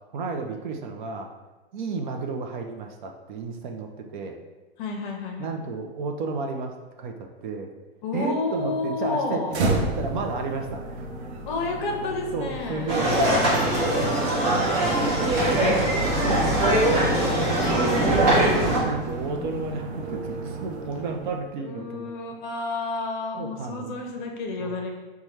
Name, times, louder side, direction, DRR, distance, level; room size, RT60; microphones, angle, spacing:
voice 1, 0.1-1.3 1.7-4.4 5.4-7.7 8.1-11.1 12.3-14.4 14.7-17.3 17.7-22.1 23.4-24.0 24.6-24.7, right 4 dB, 50° right, 3 dB, 0.5 m, -33 dB
voice 2, 4.8-5.5 8.0-9.6 11.5-13.1 17.6-18.5 21.6-24.9, left 3 dB, 50° left, 2 dB, 0.7 m, -31 dB
sound 1, 9.5-21.5, right 2 dB, 85° right, 0.8 m, -32 dB
sound 2, 12.9-18.8, right 1 dB, 25° right, 0.9 m, -22 dB
5.4 x 2.3 x 3.1 m, 1.2 s
supercardioid pair, 165°, 32 cm